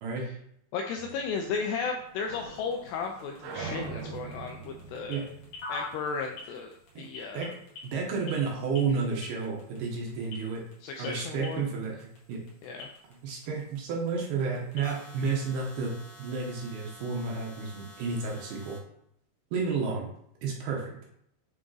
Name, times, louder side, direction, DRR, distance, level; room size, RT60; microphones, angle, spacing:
voice 1, 0.7-5.2 5.7-7.5 10.8-11.7 12.6-12.9, left 5 dB, 85° left, 3 dB, 2.4 m, -34 dB
sound 1, 1.0-6.4, right 4 dB, 90° right, 3.1 m, -43 dB
sound 2, 1.4-18.8, left 3 dB, 55° left, 2.7 m, -48 dB
voice 2, 7.8-10.6 11.0-12.4 13.2-15.9 16.2-18.8 19.5-20.1 20.4-21.0, right 5 dB, 70° right, -1 dB, 2.7 m, -31 dB
7.7 x 3.5 x 3.9 m, 0.72 s
omnidirectional pair, 5.2 m